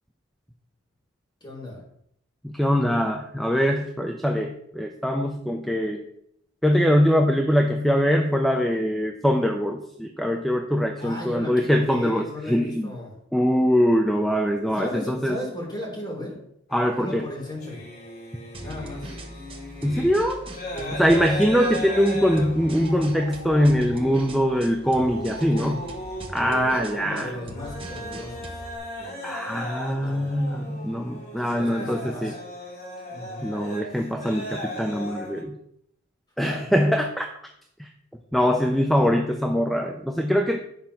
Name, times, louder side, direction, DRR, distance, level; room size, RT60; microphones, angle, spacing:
voice 1, 1.4-1.8 11.0-13.1 14.7-16.4 16.9-17.8 18.6-19.1 20.7-21.0 22.7-23.1 25.5-25.8 26.5-26.6 27.0-28.6 29.0-29.5 30.0-30.3 31.4-32.4 33.1-33.5 36.4-36.7 38.7-39.1, left 1 dB, 20° left, -3 dB, 3.9 m, -36 dB
voice 2, 2.4-6.0 6.6-12.9 13.3-15.4 16.7-17.2 19.8-20.4 20.9-25.8 26.3-27.3 29.2-32.3 33.4-35.6 36.4-37.3 37.8-37.9 38.3-40.6, equal, ahead, 2 dB, 0.6 m, -23 dB
sound 1, 16.7-35.4, equal, 50° left, 2.9 m, -37 dB
sound 2, 18.5-28.8, right 1 dB, 25° right, 1.1 m, -41 dB
9.7 x 5.1 x 5.8 m, 0.72 s
head